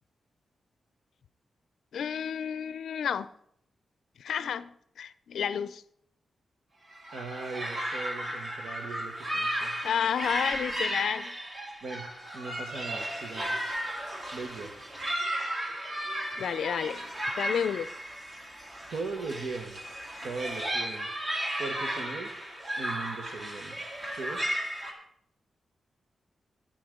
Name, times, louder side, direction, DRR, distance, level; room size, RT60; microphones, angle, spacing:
voice 1, 1.9-3.3 4.2-4.7 5.0-5.8 9.8-11.4 16.4-17.0 17.4-17.9, left 8 dB, 85° left, 16 dB, 0.4 m, -30 dB
sound 1, 6.9-24.9, right 1 dB, 35° right, 2.2 m, -34 dB
voice 2, 7.1-9.8 11.8-12.1 12.3-13.8 14.3-14.7 18.9-19.8 20.2-21.1 21.6-22.3 22.8-23.8 24.1-24.5, right 4 dB, 85° right, 7 dB, 1.3 m, -39 dB
13.0 x 8.9 x 3.7 m, 0.72 s
cardioid pair, 75°, 0 cm